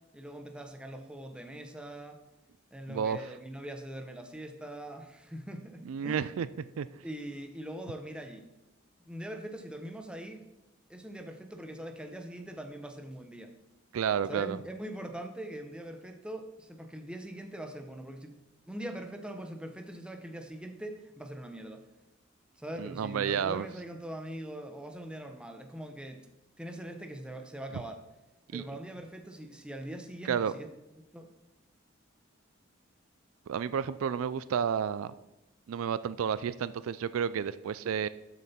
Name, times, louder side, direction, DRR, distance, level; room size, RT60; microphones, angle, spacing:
voice 1, 0.1-2.2 2.7-6.3 7.0-8.5 9.0-10.5 10.9-13.5 14.3-18.4 18.7-21.8 22.6-26.3 26.6-28.0 28.5-30.7 31.1-31.3, right 1 dB, 5° right, 5 dB, 0.8 m, -42 dB
voice 2, 2.9-3.3 5.9-6.5 6.8-6.9 13.9-14.6 22.8-23.7 28.5-28.6 30.2-30.5 33.5-35.1 35.7-38.1, right 7 dB, 80° right, 16 dB, 0.4 m, -31 dB
12.5 x 6.8 x 4.3 m, 0.99 s
head